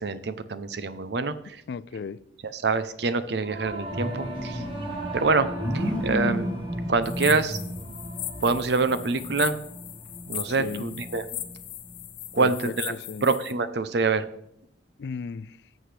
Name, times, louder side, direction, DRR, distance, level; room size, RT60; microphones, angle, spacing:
voice 1, 0.0-1.6 2.5-4.6 5.1-5.5 5.7-6.5 6.9-7.6 8.4-9.6 10.3-11.2 12.3-12.9 13.2-14.3, right 4 dB, 65° right, 0.6 m, -25 dB
voice 2, 1.7-2.2 10.5-11.0 12.4-13.3 15.0-15.6, left 5 dB, 65° left, 0.3 m, -35 dB
Singing / Musical instrument, 3.4-12.9, equal, 30° right, 1.8 m, -37 dB
sound 1, 3.7-8.7 9.3-9.4 9.8-11.5, equal, 10° left, 1.7 m, -33 dB
sound 2, 7.0-13.5, left 13 dB, 80° left, 0.8 m, -38 dB
14.0 x 7.5 x 3.3 m
head